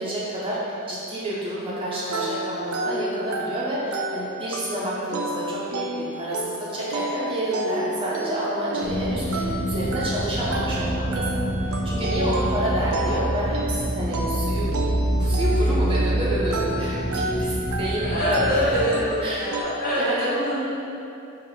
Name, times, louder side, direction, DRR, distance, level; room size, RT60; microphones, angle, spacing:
voice 1, 0.0-14.7 15.2-19.5 20.0-20.3, right 1 dB, 25° right, -7 dB, 0.6 m, -29 dB
sound 1, 2.1-19.6, right 2 dB, 70° right, 0.5 m, -31 dB
sound 2, 8.8-18.8, right 1 dB, 60° left, 0.8 m, -26 dB
voice 2, 12.6-13.1 18.0-20.6, equal, 45° left, -10 dB, 1.4 m, -26 dB
3.9 x 2.5 x 4.5 m, 2.7 s
head